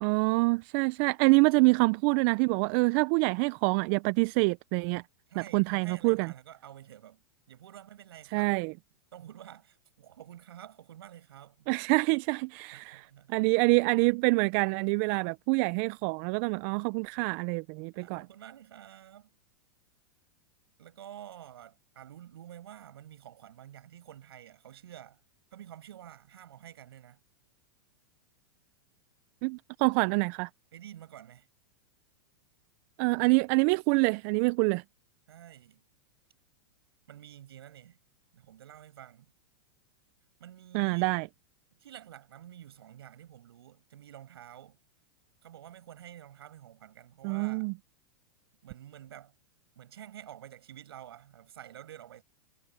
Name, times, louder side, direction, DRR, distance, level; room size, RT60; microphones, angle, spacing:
voice 1, 0.0-5.0 5.5-6.3 8.3-8.7 11.7-18.2 29.4-30.5 33.0-34.8 40.7-41.3 47.2-47.7, right 28 dB, 50° right, 0.8 m, -26 dB
voice 2, 5.3-8.5 9.1-11.7 12.7-13.3 17.9-19.3 20.8-25.2 25.5-27.2 30.7-31.5 35.3-35.8 37.1-38.0 38.3-39.3 40.4-41.1 41.8-44.8 45.4-47.7 48.6-49.4 49.8-52.2, right 11 dB, 75° right, 7.7 m, -49 dB
hypercardioid pair, 105°, 13 cm